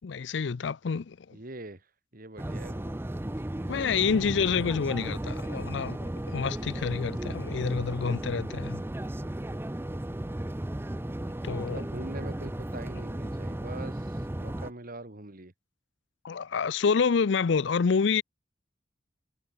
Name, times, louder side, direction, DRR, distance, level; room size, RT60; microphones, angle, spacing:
voice 1, 0.0-1.4 3.7-8.8 11.4-11.8 16.2-18.2, left 5 dB, 65° left, 0.5 m, -28 dB
voice 2, 1.3-1.9 2.1-3.0 3.9-4.3 11.5-15.5, right 2 dB, 50° right, 2.3 m, -43 dB
sound 1, 2.4-14.7, right 1 dB, 10° right, 0.6 m, -35 dB
head